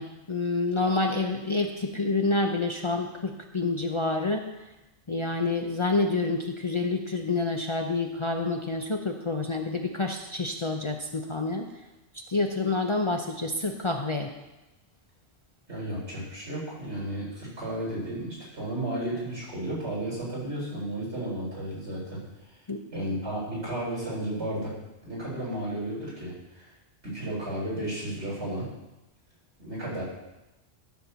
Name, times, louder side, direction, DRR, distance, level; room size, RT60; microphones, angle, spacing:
voice 1, 0.0-4.4 5.1-11.7 12.3-14.3 22.7-22.8, left 3 dB, 30° left, 2 dB, 0.6 m, -28 dB
voice 2, 15.7-22.2 22.9-24.7 25.0-26.7 27.0-28.6 29.6-30.0, right 1 dB, 75° right, -7 dB, 4.8 m, -33 dB
13.0 x 4.4 x 6.8 m, 0.98 s
omnidirectional pair, 1.2 m